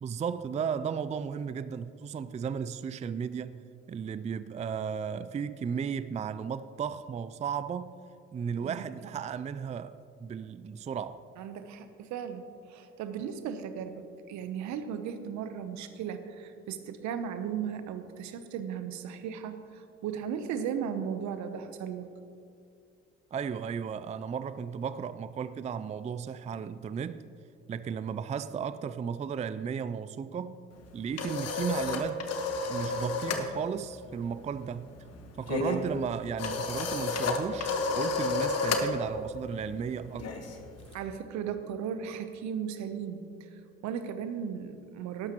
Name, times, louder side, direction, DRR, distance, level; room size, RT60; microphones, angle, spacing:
voice 1, 0.0-3.6 3.9-8.0 8.3-11.2 23.3-27.2 27.7-30.6 30.9-32.2 32.7-34.9 35.4-40.5, right 7 dB, 25° right, 0.4 m, -35 dB
voice 2, 11.4-22.1 40.9-45.3, right 8 dB, 70° right, 0.9 m, -36 dB
sound 1, 30.8-33.5 33.8-34.1 34.3-41.0, left 3 dB, 55° left, 1.3 m, -32 dB
12.5 x 11.5 x 3.0 m
hypercardioid pair, 60°, 30 cm